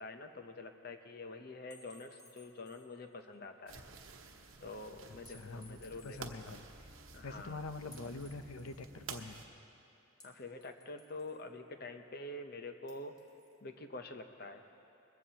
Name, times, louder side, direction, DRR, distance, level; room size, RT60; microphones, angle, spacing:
voice 1, 0.0-3.9 4.6-6.5 7.1-7.6 10.2-13.1 13.6-14.6, left 2 dB, 45° left, 6 dB, 0.8 m, -47 dB
sound 1, 1.7-3.0 3.3-3.4 5.3-6.3 7.9-8.9 10.2-11.5 12.9-13.6, left 2 dB, 15° left, 1.3 m, -60 dB
sound 2, 3.7-9.5, right 4 dB, 70° right, 1.0 m, -52 dB
voice 2, 5.3-6.7 7.2-9.4, left 3 dB, 85° left, 10 dB, 0.7 m, -45 dB
21.5 x 15.0 x 2.9 m, 2.9 s
head